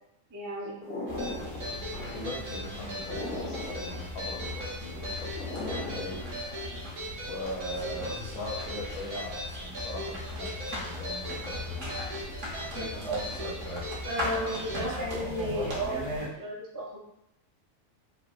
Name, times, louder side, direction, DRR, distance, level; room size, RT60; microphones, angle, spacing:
voice 1, 0.3-1.2 14.0-17.0, equal, 20° right, -4 dB, 0.5 m, -34 dB
sound 1, 0.8-6.0, left 2 dB, 45° left, 1.4 m, -39 dB
sound 2, 1.1-16.3, left 1 dB, 60° right, 1.4 m, -38 dB
sound 3, 1.2-14.9, equal, 90° right, 1.6 m, -39 dB
voice 2, 2.1-6.2 7.3-11.8, left 1 dB, 75° left, 0 dB, 1.3 m, -40 dB
4.8 x 3.3 x 2.5 m, 0.84 s
omnidirectional pair, 1.5 m